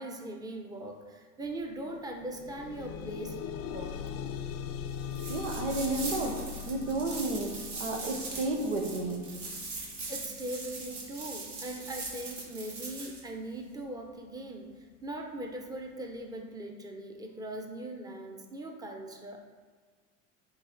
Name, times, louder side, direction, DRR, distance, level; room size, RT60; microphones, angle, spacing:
voice 1, 0.0-3.4 3.6-4.0 10.1-14.7 15.0-19.4, right 1 dB, 10° right, 2 dB, 0.8 m, -40 dB
sound 1, 1.5-1.6 2.0-13.0 13.8-13.9 14.3-14.4, left 7 dB, 40° left, 0.5 m, -41 dB
sound 2, 5.1-13.2, right 3 dB, 50° right, 1.8 m, -41 dB
voice 2, 5.3-7.5 7.8-9.2, right 2 dB, 85° right, 2 dB, 1.2 m, -32 dB
9.0 x 3.2 x 3.9 m, 1.5 s
hypercardioid pair, 95°, 36 cm